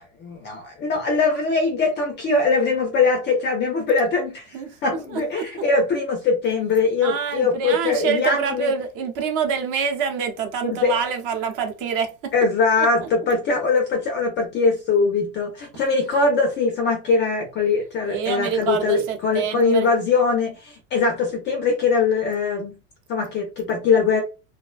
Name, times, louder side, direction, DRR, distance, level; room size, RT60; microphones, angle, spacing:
voice 1, 0.0-4.6 4.8-8.7 10.6-11.0 12.3-22.8 23.1-24.2, left 4 dB, 25° left, 0.3 m, -21 dB
voice 2, 5.1-5.5 7.0-12.3 12.8-12.9 18.1-19.9, right 6 dB, 45° right, 0.7 m, -26 dB
2.4 x 2.2 x 2.3 m
supercardioid pair, 135°, 46 cm